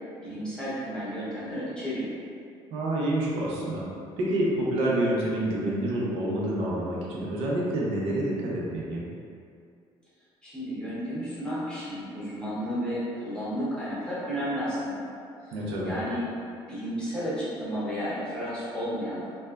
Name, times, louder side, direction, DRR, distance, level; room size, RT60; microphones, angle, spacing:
voice 1, 0.2-2.1 10.4-15.1 15.5-16.2 16.7-19.2, equal, 10° left, -10 dB, 0.7 m, -32 dB
voice 2, 2.7-3.8 4.2-9.1 15.5-15.9, right 1 dB, 85° right, -5 dB, 0.6 m, -28 dB
3.1 x 2.1 x 2.3 m, 2.4 s
cardioid pair, 150°, 10 cm